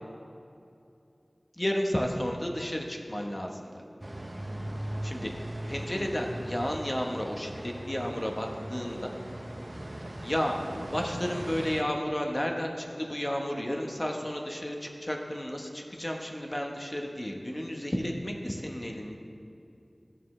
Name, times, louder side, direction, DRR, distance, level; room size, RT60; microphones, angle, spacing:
voice 1, 1.6-3.7 5.0-5.3 5.7-9.1 10.2-10.6 10.9-19.2, equal, 30° left, 1 dB, 1.1 m, -32 dB
sound 1, 4.0-11.8, right 1 dB, 35° right, 0.7 m, -39 dB
15.0 x 6.8 x 3.2 m, 2.6 s
wide cardioid pair, 50°, 0 cm